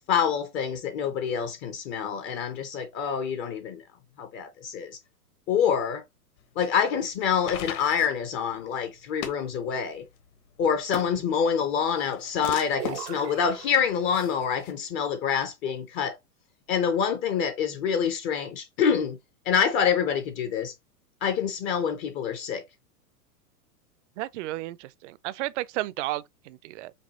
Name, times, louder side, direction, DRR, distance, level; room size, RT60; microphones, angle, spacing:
voice 1, 0.1-3.8 4.2-5.0 5.5-6.0 6.6-10.1 10.6-16.2 16.7-19.2 19.5-20.7 21.2-22.7, left 7 dB, 25° left, 0.5 m, -26 dB
sound 1, 6.4-14.7, left 9 dB, 60° left, 1.3 m, -41 dB
sound 2, 12.8-14.3, right 11 dB, 80° right, 0.9 m, -39 dB
voice 2, 24.2-26.9, right 17 dB, 50° right, 0.5 m, -33 dB
5.3 x 3.2 x 2.8 m
hypercardioid pair, 125°, 47 cm